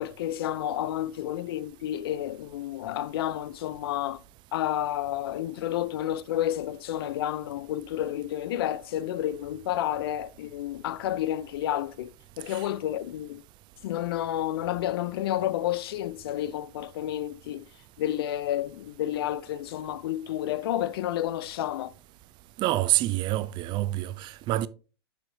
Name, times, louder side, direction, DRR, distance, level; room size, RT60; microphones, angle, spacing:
voice 1, 0.0-4.2 4.5-13.4 13.8-17.7 18.0-21.9, left 12 dB, 65° left, 0.5 m, -30 dB
voice 2, 22.6-24.7, right 16 dB, 35° right, 0.4 m, -27 dB
6.6 x 5.7 x 2.7 m
hypercardioid pair, 115°, 14 cm